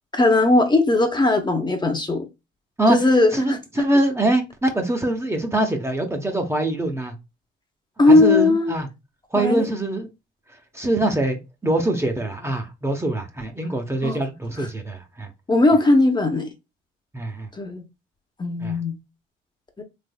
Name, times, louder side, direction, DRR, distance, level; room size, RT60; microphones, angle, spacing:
voice 1, 0.1-2.2 2.9-3.6 8.0-8.7 9.4-9.6 14.0-14.2 14.6-14.7 15.5-16.5 17.5-17.8 18.4-19.0 19.8-19.9, left 2 dB, 20° left, 0.8 m, -18 dB
voice 2, 3.3-7.1 8.1-8.9 9.3-10.1 10.7-15.3 17.1-17.5 18.6-18.8, right 1 dB, 15° right, 0.7 m, -23 dB
3.4 x 3.2 x 2.2 m
cardioid pair, 90°, 20 cm